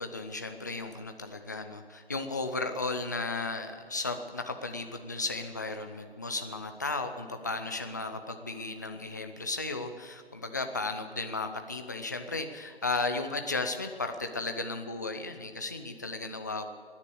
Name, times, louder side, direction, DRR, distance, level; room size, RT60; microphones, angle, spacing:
voice 1, 0.0-16.7, left 3 dB, 20° left, 6 dB, 0.6 m, -35 dB
16.5 x 10.0 x 7.9 m, 2.2 s
figure-of-eight pair, 165°, 31 cm